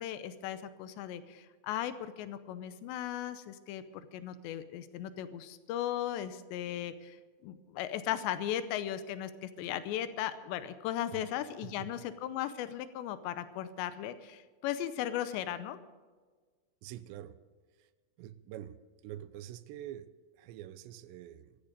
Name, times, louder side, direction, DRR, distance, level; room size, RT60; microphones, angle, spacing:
voice 1, 0.0-3.8 4.1-7.2 7.4-15.8, left 11 dB, 90° left, 12 dB, 3.0 m, -37 dB
voice 2, 16.8-17.4 17.8-17.9 18.2-18.8 19.0-21.6, right 12 dB, 85° right, 15 dB, 2.9 m, -46 dB
14.0 x 13.5 x 6.8 m, 1.4 s
omnidirectional pair, 5.1 m